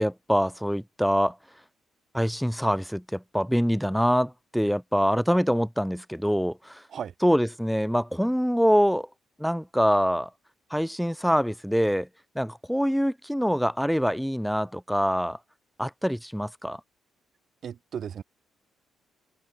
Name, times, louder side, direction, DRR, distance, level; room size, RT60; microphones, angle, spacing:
voice 1, 0.0-1.4 2.1-6.8 7.2-9.1 9.4-10.3 10.7-12.1 12.4-15.4 15.8-16.8, equal, ahead, 0.4 m, -25 dB
voice 2, 17.6-18.2, right 8 dB, 60° right, 2.0 m, -35 dB
cardioid pair, 90°, 0 cm